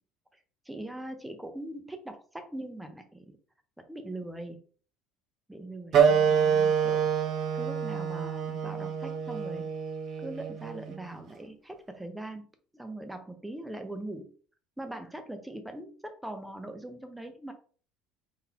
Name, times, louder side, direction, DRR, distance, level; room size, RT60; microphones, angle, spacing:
voice 1, 0.7-3.4 3.8-4.6 5.5-7.1 7.5-9.7 10.2-12.5 12.7-14.3 14.8-17.5, right 1 dB, 5° right, 6 dB, 0.6 m, -41 dB
Wind instrument woodwind instrument, 5.9-11.0, right 7 dB, 40° right, 0.6 m, -27 dB
3.9 x 3.6 x 2.8 m, 0.41 s
cardioid pair, 150°, 0 cm